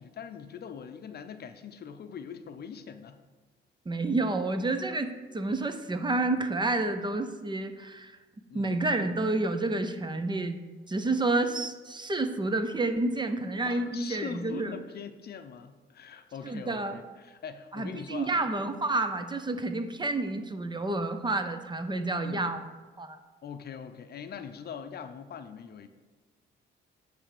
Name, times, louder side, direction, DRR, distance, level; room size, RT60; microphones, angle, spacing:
voice 1, 0.0-3.2 8.5-8.8 13.6-18.3 21.9-22.5 23.4-25.9, left 7 dB, 55° left, 9 dB, 0.6 m, -42 dB
voice 2, 3.9-8.2 8.5-14.7 16.4-17.0 17.7-22.6 23.0-23.2, right 2 dB, 25° right, 8 dB, 0.7 m, -29 dB
9.9 x 3.5 x 6.6 m, 1.3 s
cardioid pair, 90°, 20 cm